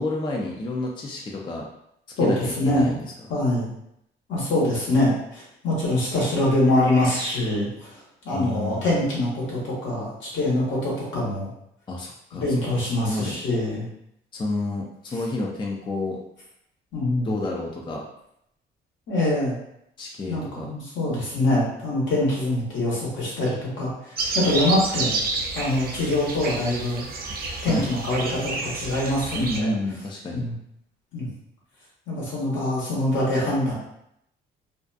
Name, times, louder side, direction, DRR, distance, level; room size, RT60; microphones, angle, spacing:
voice 1, 0.0-1.7 2.2-3.1 8.3-8.9 11.9-12.5 12.8-13.3 14.3-16.2 17.2-18.0 20.0-20.7 27.7-27.9 29.4-30.5, left 2 dB, 25° left, -1 dB, 0.4 m, -30 dB
voice 2, 2.2-2.9 3.3-3.7 4.3-7.9 8.2-11.5 12.3-13.9 16.9-17.3 19.1-19.5 20.3-25.2 25.5-27.0 27.6-29.7 30.3-30.5 31.1-31.3 32.1-33.7, left 1 dB, 70° left, -6 dB, 1.2 m, -24 dB
sound 1, 24.2-29.6, right 3 dB, 50° right, 0.5 m, -30 dB
2.5 x 2.2 x 2.5 m, 0.78 s
cardioid pair, 90°, 20 cm